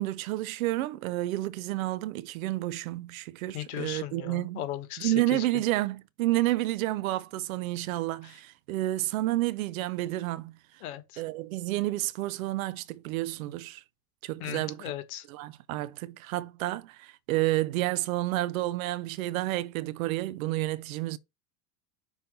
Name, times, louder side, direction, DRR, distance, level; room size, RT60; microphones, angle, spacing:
voice 1, 0.0-4.6 5.0-10.6 11.2-13.8 14.2-14.9 15.3-21.2, right 17 dB, 55° right, 0.5 m, -30 dB
voice 2, 3.5-5.5 10.8-11.2 14.4-15.3, left 13 dB, 60° left, 1.3 m, -37 dB
5.8 x 3.9 x 5.2 m
supercardioid pair, 175°, 49 cm